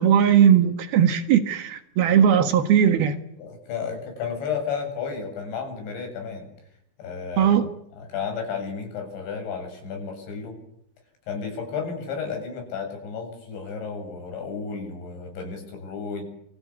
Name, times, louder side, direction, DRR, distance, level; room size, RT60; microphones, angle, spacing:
voice 1, 0.0-3.2 7.4-7.7, right 8 dB, 65° right, 3.2 m, -18 dB
voice 2, 3.4-6.5 7.0-7.7 8.0-10.6 11.3-16.2, left 6 dB, 75° left, 9.6 m, -32 dB
28.5 x 24.5 x 8.5 m
omnidirectional pair, 5.2 m